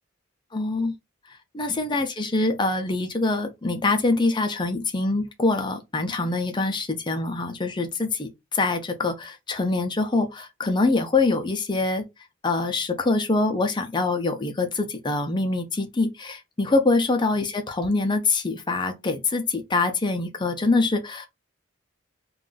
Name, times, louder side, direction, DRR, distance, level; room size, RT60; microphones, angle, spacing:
voice 1, 0.5-0.9 1.5-12.0 12.4-21.3, left 3 dB, 25° left, 0.5 m, -24 dB
2.5 x 2.3 x 3.8 m
head